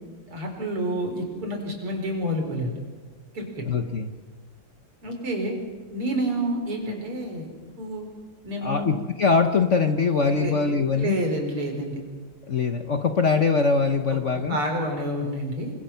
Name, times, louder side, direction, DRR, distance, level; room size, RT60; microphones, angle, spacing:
voice 1, 0.3-2.8 3.3-3.6 5.0-5.6 5.9-7.5 7.8-8.1 8.4-8.9 10.3-10.5 10.9-12.0 14.3-15.7, right 1 dB, 85° right, 3 dB, 5.2 m, -29 dB
voice 2, 3.6-4.1 8.6-11.2 12.5-14.6, left 4 dB, 45° left, 6 dB, 1.1 m, -22 dB
28.5 x 23.5 x 5.8 m, 1.4 s
omnidirectional pair, 2.4 m